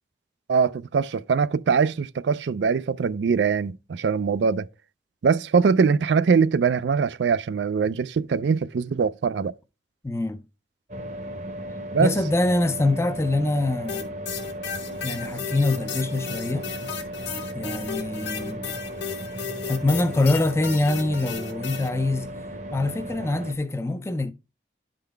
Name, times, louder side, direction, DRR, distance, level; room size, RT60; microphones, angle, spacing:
voice 1, 0.5-4.7 5.2-9.5 11.9-12.1, right 5 dB, 80° right, 0.4 m, -22 dB
voice 2, 10.0-10.4 12.0-14.1 15.0-16.9 17.5-18.7 19.7-22.3 22.7-24.3, left 2 dB, 15° left, 0.4 m, -24 dB
sound 1, 10.9-23.5, right 1 dB, 40° right, 0.8 m, -36 dB
sound 2, 13.9-21.9, left 7 dB, 75° left, 1.4 m, -34 dB
11.5 x 3.9 x 3.3 m
head